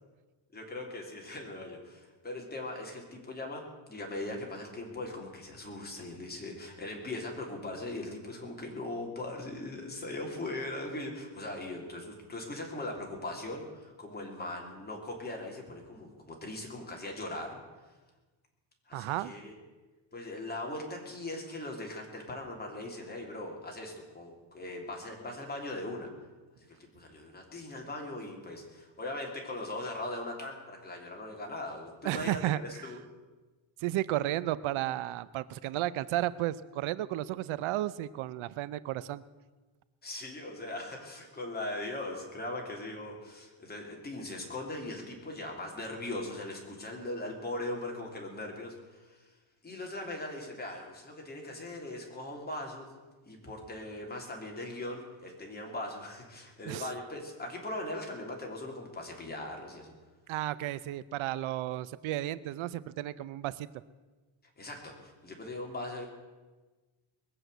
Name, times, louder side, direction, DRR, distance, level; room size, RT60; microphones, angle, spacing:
voice 1, 0.5-17.6 18.9-19.5 20.1-26.1 26.7-33.0 40.0-49.3 49.6-52.9 53.2-59.9 64.6-66.1, left 2 dB, 20° left, 0 dB, 3.2 m, -40 dB
voice 2, 18.9-19.3 32.0-32.9 33.8-39.2 56.6-56.9 60.3-63.7, right 14 dB, 80° right, 17 dB, 0.7 m, -33 dB
20.5 x 7.8 x 8.0 m, 1.3 s
cardioid pair, 145°, 47 cm